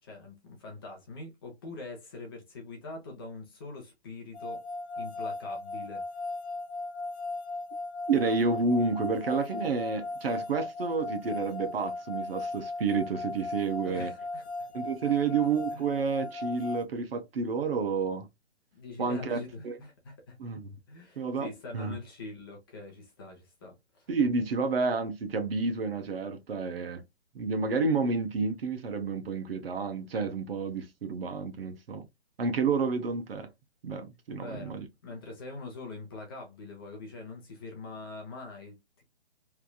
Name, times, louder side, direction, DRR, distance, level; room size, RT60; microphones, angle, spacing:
voice 1, 0.0-4.6 5.0-6.0 13.8-14.7 15.0-15.2 15.7-15.8 18.7-20.4 20.9-24.1 34.3-39.0, left 3 dB, 20° left, 0.8 m, -44 dB
sound 1, 4.3-16.8, left 2 dB, 85° left, 0.9 m, -37 dB
voice 2, 8.1-14.1 14.7-18.3 19.0-19.4 19.6-19.8 20.4-20.8 21.2-22.0 24.1-27.0 27.3-32.1 32.4-33.5 33.8-34.9, right 4 dB, 60° right, 0.9 m, -30 dB
3.3 x 2.6 x 2.2 m
hypercardioid pair, 170°, 33 cm